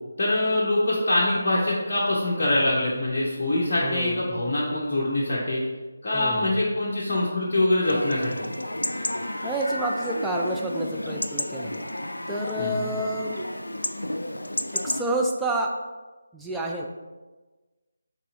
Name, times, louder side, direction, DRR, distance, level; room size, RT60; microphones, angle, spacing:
voice 1, 0.2-5.6 6.0-8.5 12.6-12.9, left 1 dB, 40° left, -6 dB, 0.8 m, -24 dB
voice 2, 3.8-4.4 6.1-6.6 9.4-12.0 12.3-13.5 14.7-15.8 16.3-16.9, right 1 dB, 5° right, -2 dB, 0.3 m, -29 dB
Chatter / Livestock farm animals working animals / Chirp tweet, 7.8-15.0, left 1 dB, 80° left, 0.3 m, -31 dB
5.3 x 3.5 x 2.6 m, 1.2 s
figure-of-eight pair, 155°, 0 cm